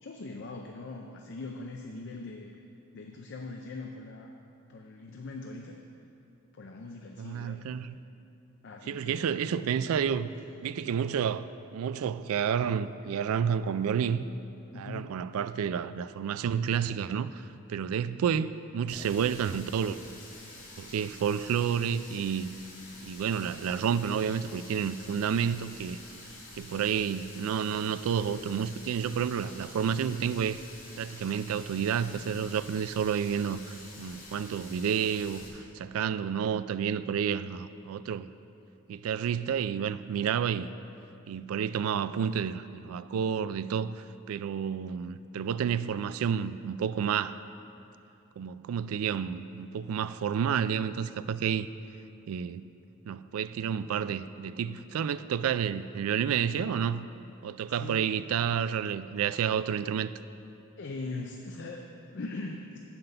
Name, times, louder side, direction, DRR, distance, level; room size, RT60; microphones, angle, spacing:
voice 1, 0.0-2.6 2.9-4.4 4.7-5.8 6.5-7.7 8.6-9.3 14.7-15.1 18.4-18.5 57.8-58.2 60.8-62.8, left 3 dB, 50° left, 0.5 m, -41 dB
voice 2, 7.2-8.0 8.8-10.3 10.6-11.5 11.7-14.2 14.7-17.4 17.7-20.0 20.8-22.5 23.0-26.0 26.6-30.6 31.0-38.3 38.9-40.7 41.3-47.4 48.4-51.7 52.3-52.6 53.1-57.1 57.4-60.1, right 7 dB, 75° right, 0.3 m, -30 dB
Water tap faucet, 18.9-35.5, left 2 dB, 65° left, 2.2 m, -48 dB
8.9 x 5.9 x 6.6 m
head